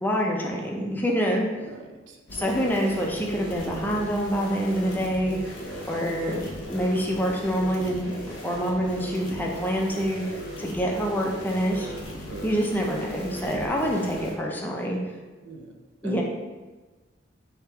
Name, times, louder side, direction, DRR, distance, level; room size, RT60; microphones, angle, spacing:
voice 1, 0.0-1.5 2.3-5.6 5.9-6.4 6.7-8.1 8.4-11.9 12.4-15.0 16.0-16.2, equal, 10° left, -1 dB, 0.4 m, -26 dB
voice 2, 1.5-2.2 12.3-12.5 15.4-16.2, right 1 dB, 65° right, 2 dB, 0.5 m, -40 dB
sound 1, 2.3-14.3, equal, 75° left, 0.9 m, -38 dB
3.4 x 2.8 x 4.3 m, 1.2 s
head